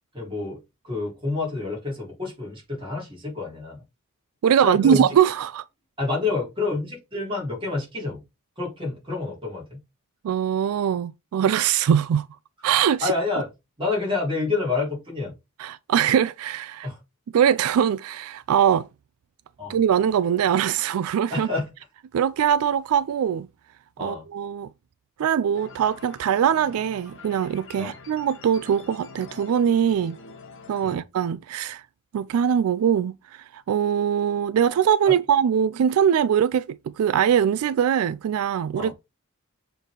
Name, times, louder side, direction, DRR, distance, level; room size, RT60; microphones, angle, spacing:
voice 1, 0.1-3.8 4.6-5.1 6.0-8.2 8.6-9.8 13.0-13.5 13.8-15.3 16.8-17.0 19.6-19.8 21.3-21.7 24.0-24.3 27.8-27.9 30.8-31.0 35.1-35.2 38.7-38.9, left 3 dB, 25° right, 3.7 m, -28 dB
voice 2, 4.4-5.6 10.2-12.3 12.6-13.1 15.6-16.9 17.3-18.9 19.7-21.5 22.1-23.5 24.0-24.7 25.2-30.2 30.7-31.8 32.1-38.9, right 8 dB, 75° right, 0.3 m, -22 dB
sound 1, 25.5-31.0, left 3 dB, 60° left, 1.5 m, -45 dB
7.0 x 4.1 x 3.7 m
head